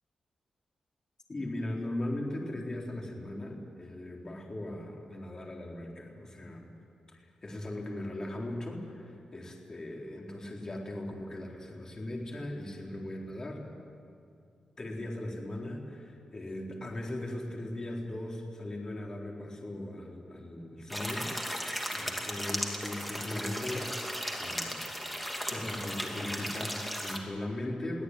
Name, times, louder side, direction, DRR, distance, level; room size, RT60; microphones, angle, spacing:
voice 1, 1.3-6.7 7.1-13.6 14.8-21.5 21.9-24.0 24.4-28.0, left 1 dB, 30° left, -1 dB, 3.9 m, -39 dB
sound 1, 20.9-27.2, equal, ahead, 2.7 m, -36 dB
22.5 x 17.0 x 9.7 m, 2.4 s
wide cardioid pair, 120°, 2 cm